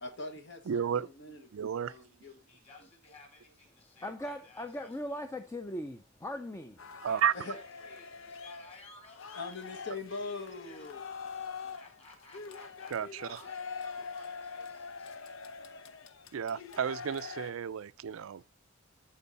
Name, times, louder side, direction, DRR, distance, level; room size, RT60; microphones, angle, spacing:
voice 1, 0.0-1.5 1.8-2.5 7.3-7.6 9.3-11.1, left 3 dB, 60° left, 1.2 m, -42 dB
voice 2, 0.7-1.1 1.5-1.9 7.0-7.3 12.9-13.3 16.3-18.4, right 8 dB, 80° right, 0.4 m, -32 dB
voice 3, 2.5-4.9 7.1-9.9 10.5-11.0 11.8-13.0 13.3-15.4, left 2 dB, 30° left, 3.7 m, -57 dB
voice 4, 4.0-6.9, left 1 dB, 15° left, 0.5 m, -39 dB
sound 1, 6.8-17.5, left 5 dB, 75° left, 0.8 m, -44 dB
12.5 x 4.6 x 4.1 m
head